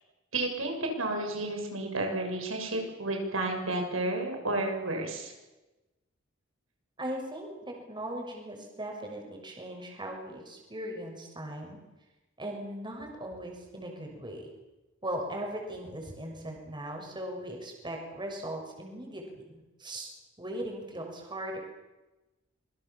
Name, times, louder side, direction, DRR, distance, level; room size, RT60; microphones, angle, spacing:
voice 1, 0.3-5.3, right 2 dB, 85° right, 3 dB, 6.5 m, -31 dB
voice 2, 7.0-11.8 12.4-14.5 15.0-19.4 19.8-20.1 20.4-21.6, right 1 dB, 25° right, 2 dB, 6.5 m, -38 dB
26.5 x 23.5 x 7.4 m, 1.1 s
head